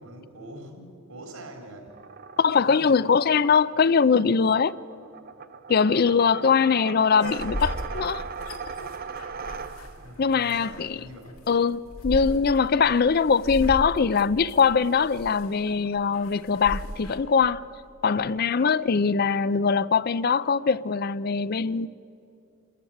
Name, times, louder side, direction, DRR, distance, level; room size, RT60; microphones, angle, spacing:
voice 1, 0.0-1.9 2.6-3.2 6.3-6.5 9.9-11.4 12.7-12.9, right 1 dB, 80° right, 4.5 m, -44 dB
sound 1, 1.9-10.2, right 5 dB, 40° right, 0.6 m, -39 dB
voice 2, 2.4-4.8 5.7-8.2 10.2-11.0 11.5-17.6 18.0-21.9, left 5 dB, 45° left, 0.4 m, -22 dB
sound 2, 7.2-17.2, equal, 85° left, 2.9 m, -37 dB
27.5 x 14.5 x 9.1 m
head